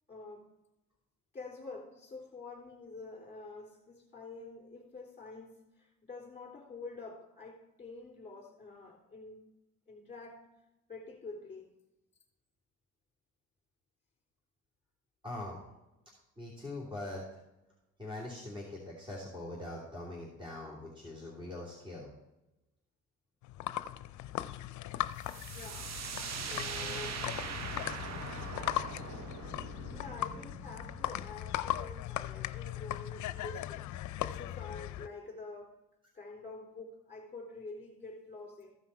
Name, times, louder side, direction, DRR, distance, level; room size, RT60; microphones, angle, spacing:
voice 1, 0.1-0.5 1.3-9.5 9.9-10.5 10.9-11.7 25.5-27.3 29.9-35.8 36.1-38.8, left 3 dB, 25° left, -1 dB, 3.6 m, -47 dB
voice 2, 15.2-15.6 16.4-17.4 18.0-22.1, left 1 dB, 15° right, -4 dB, 2.9 m, -42 dB
sound 1, 23.4-35.1, left 13 dB, 70° left, 0.5 m, -38 dB
sound 2, 25.2-32.8, right 6 dB, 60° right, 1.0 m, -42 dB
14.5 x 5.7 x 4.5 m, 0.95 s
cardioid pair, 90°, 30 cm